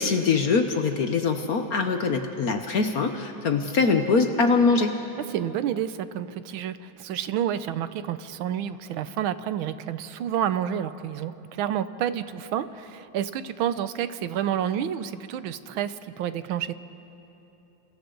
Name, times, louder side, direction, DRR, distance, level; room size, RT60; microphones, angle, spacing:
voice 1, 0.0-4.9, left 4 dB, 55° left, 6 dB, 1.2 m, -23 dB
voice 2, 5.3-16.7, right 10 dB, 75° right, 13 dB, 1.5 m, -29 dB
29.5 x 28.5 x 3.9 m, 3.0 s
omnidirectional pair, 2.3 m